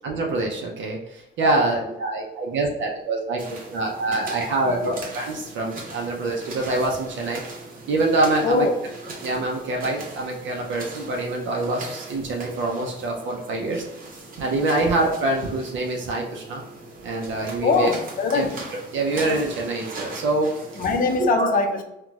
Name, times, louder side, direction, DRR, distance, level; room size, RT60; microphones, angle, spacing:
voice 1, 0.0-3.4 3.7-7.4 7.9-8.7 9.2-13.8 14.4-16.6 17.0-17.9 18.3-18.5 18.9-20.5 21.2-21.5, right 2 dB, 70° right, 0 dB, 0.5 m, -25 dB
sound 1, 3.4-21.2, right 2 dB, 45° right, 0.8 m, -39 dB
voice 2, 4.7-5.0 8.4-8.7 17.6-18.6 20.8-21.8, left 4 dB, 45° left, 4 dB, 0.5 m, -22 dB
3.9 x 2.2 x 2.3 m, 0.86 s
cardioid pair, 90°, 20 cm